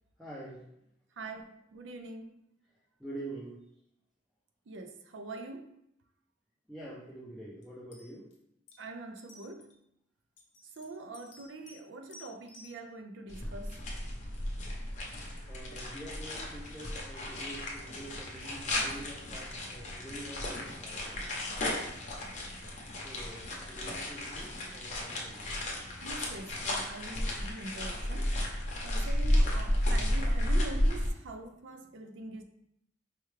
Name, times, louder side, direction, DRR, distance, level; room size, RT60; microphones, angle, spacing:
voice 1, 0.2-0.6 3.0-3.6 6.7-8.3 15.5-21.3 21.8-22.0 23.0-25.6, right 1 dB, ahead, -8 dB, 0.5 m, -46 dB
voice 2, 1.2-2.4 4.7-5.8 8.8-9.7 10.8-13.8 26.0-28.4 28.8-32.4, right 2 dB, 85° right, 7 dB, 0.4 m, -44 dB
sound 1, 7.6-7.7 7.9-8.4 8.7-8.8 9.2-9.7 10.4-11.8 12.1-12.7, left 3 dB, 70° left, 0.8 m, -54 dB
sound 2, 13.3-31.1, left 1 dB, 40° left, 0.7 m, -33 dB
4.5 x 2.3 x 3.2 m, 0.77 s
head